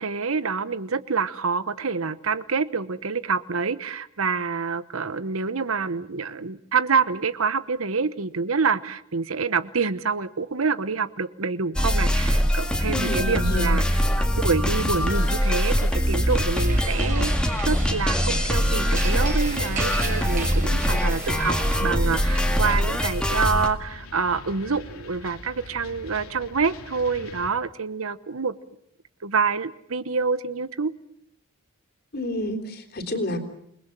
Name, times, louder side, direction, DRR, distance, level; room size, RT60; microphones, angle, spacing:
voice 1, 0.0-13.8 14.2-17.3 17.7-28.5 29.2-30.9, right 5 dB, 75° right, 15 dB, 1.0 m, -27 dB
sound 1, 11.7-23.7, equal, 5° left, 2.1 m, -23 dB
voice 2, 12.9-13.8 32.1-33.4, left 1 dB, 50° left, 6 dB, 3.7 m, -29 dB
sound 2, 14.7-27.5, left 2 dB, 80° left, 3.3 m, -41 dB
sound 3, 16.5-21.8, right 4 dB, 40° right, 5.2 m, -36 dB
28.5 x 20.5 x 7.5 m, 0.71 s
head